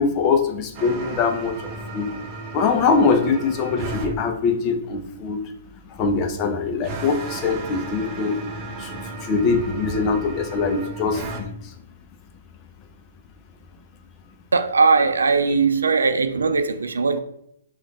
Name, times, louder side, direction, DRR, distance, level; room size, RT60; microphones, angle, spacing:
voice 1, 0.0-2.1 2.5-5.4 5.9-11.7, left 4 dB, 30° left, 0.7 m, -23 dB
sound 1, 0.7-4.1 6.8-11.4, right 3 dB, 30° right, 0.8 m, -35 dB
voice 2, 14.5-17.2, right 4 dB, 85° right, 0.4 m, -19 dB
5.1 x 2.5 x 4.1 m
hypercardioid pair, 130°, 0 cm